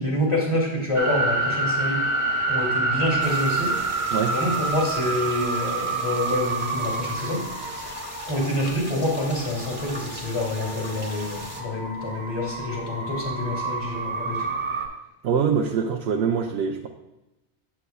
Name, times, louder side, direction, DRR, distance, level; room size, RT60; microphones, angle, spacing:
voice 1, 0.0-2.0 2.5-3.7 4.3-7.4 7.8-8.0 8.3-14.6, left 1 dB, 30° left, -4 dB, 2.2 m, -27 dB
sound 1, 0.9-14.9, right 3 dB, 50° right, 1.2 m, -28 dB
sound 2, 3.2-11.6, right 1 dB, 10° right, 1.0 m, -39 dB
voice 2, 15.2-16.9, right 6 dB, 80° right, 2 dB, 0.8 m, -24 dB
8.2 x 7.8 x 2.3 m, 0.97 s
omnidirectional pair, 1.1 m